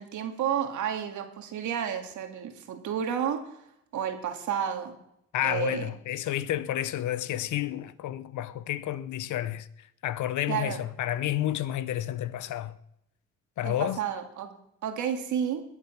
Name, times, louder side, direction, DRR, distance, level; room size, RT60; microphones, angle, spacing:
voice 1, 0.0-3.4 3.9-4.9 5.4-5.9 10.5-10.8 13.6-15.6, right 8 dB, 80° right, 2.1 m, -31 dB
voice 2, 5.3-12.8 13.6-14.0, left 12 dB, 75° left, 0.9 m, -30 dB
21.0 x 7.5 x 5.8 m
cardioid pair, 90°, 30 cm